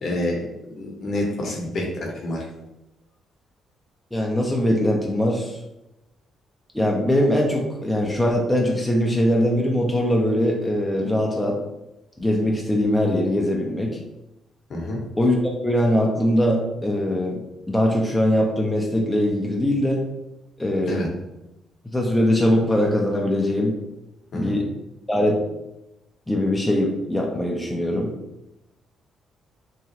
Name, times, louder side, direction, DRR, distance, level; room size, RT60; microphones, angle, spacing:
voice 1, 0.0-2.4 14.7-15.0 20.9-21.1 24.3-24.6, left 1 dB, 55° left, -1 dB, 0.8 m, -28 dB
voice 2, 4.1-5.6 6.7-11.6 12.2-13.9 15.2-15.4 15.6-17.4 17.7-20.0 20.6-21.0 21.9-23.8 24.3-24.6 25.1-25.4 26.3-28.1, left 1 dB, 10° left, -1 dB, 0.5 m, -21 dB
2.9 x 2.3 x 2.7 m, 0.92 s
cardioid pair, 90°, 0 cm